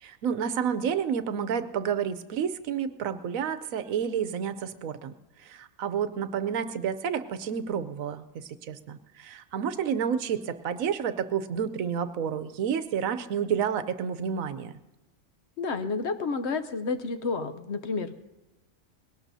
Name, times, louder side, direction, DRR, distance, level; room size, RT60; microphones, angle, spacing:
voice 1, 0.0-5.1 5.4-14.7, right 7 dB, 80° right, 11 dB, 1.1 m, -30 dB
voice 2, 15.6-18.1, left 4 dB, 60° left, 9 dB, 0.9 m, -30 dB
21.0 x 18.0 x 2.7 m, 1.0 s
omnidirectional pair, 1.4 m